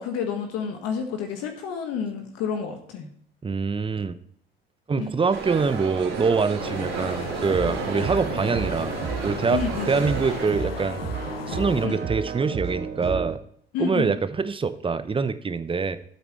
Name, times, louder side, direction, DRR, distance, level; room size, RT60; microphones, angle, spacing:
voice 1, 0.0-3.1 5.0-5.1 9.5-9.9 11.8-12.0 13.7-14.1, left 6 dB, 55° left, 4 dB, 1.6 m, -29 dB
voice 2, 3.4-4.1 4.9-8.9 9.2-9.6 9.9-11.0 11.5-13.4 13.8-16.0, right 4 dB, 20° right, 13 dB, 0.8 m, -24 dB
sound 1, 5.3-10.5, right 6 dB, 55° right, 3.6 m, -33 dB
sound 2, 6.6-11.9, left 7 dB, 80° left, 0.9 m, -36 dB
sound 3, 7.3-13.4, right 6 dB, 35° right, 2.1 m, -33 dB
14.5 x 8.4 x 3.2 m, 0.66 s
figure-of-eight pair, 60°, 29 cm